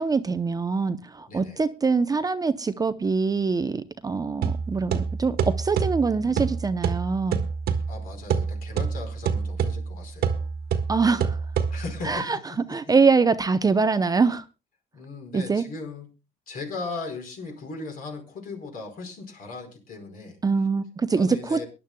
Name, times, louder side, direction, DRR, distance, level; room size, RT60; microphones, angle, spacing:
voice 1, 0.0-7.4 10.9-11.4 12.0-12.4 12.7-14.4 15.3-15.6 20.4-21.6, right 4 dB, 20° right, 0.6 m, -24 dB
voice 2, 1.3-1.6 6.1-6.6 7.9-10.5 11.7-12.8 14.9-16.1 16.5-20.4 21.2-21.6, left 3 dB, 55° left, 4.9 m, -38 dB
sound 1, 4.4-12.1, right 6 dB, 70° right, 1.5 m, -28 dB
23.0 x 11.0 x 2.2 m
cardioid pair, 110°, 17 cm